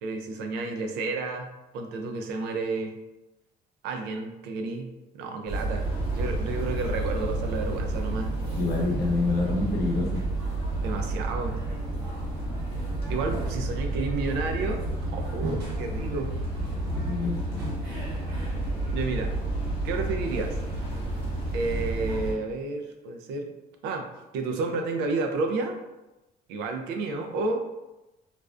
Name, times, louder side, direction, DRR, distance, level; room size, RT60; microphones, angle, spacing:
voice 1, 0.0-1.5 1.7-3.0 3.8-5.9 6.1-8.3 10.8-11.6 13.1-14.8 15.1-16.3 18.9-19.3 19.8-20.5 21.5-23.5 23.8-24.1 24.3-25.8 26.5-27.6, right 3 dB, 90° right, 4 dB, 0.4 m, -31 dB
sound 1, 5.5-22.3, right 2 dB, 70° right, 1.0 m, -30 dB
sound 2, 5.8-22.0, left 1 dB, 35° left, 0.6 m, -41 dB
voice 2, 8.5-10.2 16.9-17.7, left 3 dB, 70° left, -2 dB, 0.7 m, -27 dB
2.5 x 2.1 x 2.3 m, 0.99 s
cardioid pair, 110°, 17 cm